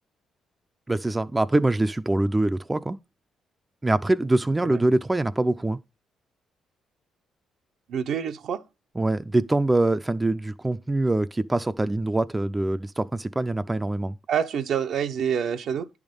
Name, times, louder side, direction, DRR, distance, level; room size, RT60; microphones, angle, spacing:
voice 1, 0.9-3.0 3.8-5.8 9.0-14.2, right 2 dB, 15° right, 0.4 m, -24 dB
voice 2, 7.9-8.6 14.3-15.9, right 8 dB, 70° right, 0.7 m, -27 dB
10.5 x 3.5 x 5.3 m
cardioid pair, 90°, 0 cm